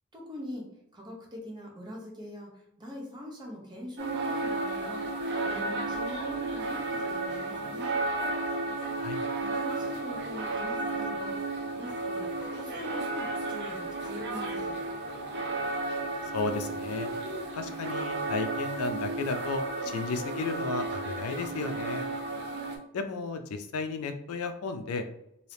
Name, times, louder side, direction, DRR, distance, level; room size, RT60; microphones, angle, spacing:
voice 1, 0.1-0.7 0.9-2.5 2.8-5.1 5.4-8.0 9.4-11.3 11.8-14.8, equal, 20° right, -1 dB, 0.8 m, -42 dB
sound 1, 4.0-22.8, right 2 dB, 50° right, 0.6 m, -33 dB
voice 2, 16.3-17.1 17.5-22.1 22.9-25.0, left 3 dB, 80° left, 8 dB, 0.4 m, -33 dB
2.7 x 2.7 x 3.3 m, 0.83 s
head